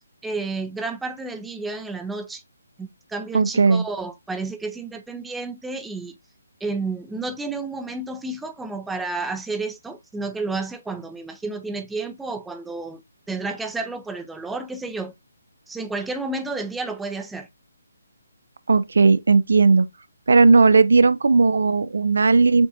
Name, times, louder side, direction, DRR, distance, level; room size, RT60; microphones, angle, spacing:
voice 1, 0.2-2.4 2.8-6.1 6.6-13.0 13.3-15.1 15.7-17.5, right 3 dB, 5° right, 0.4 m, -31 dB
voice 2, 3.3-3.8 18.7-19.9 20.3-22.7, right 4 dB, 70° right, 0.4 m, -16 dB
6.9 x 2.5 x 2.4 m
figure-of-eight pair, 145°, 0 cm